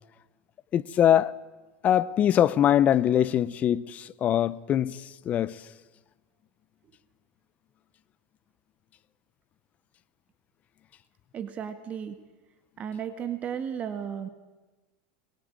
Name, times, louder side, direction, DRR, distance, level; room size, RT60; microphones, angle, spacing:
voice 1, 0.7-1.4 1.8-5.6, left 10 dB, 30° left, 0.7 m, -23 dB
voice 2, 11.3-12.2 12.8-14.3, right 8 dB, 30° right, 1.7 m, -34 dB
23.0 x 21.5 x 8.9 m
supercardioid pair, 145°, 5 cm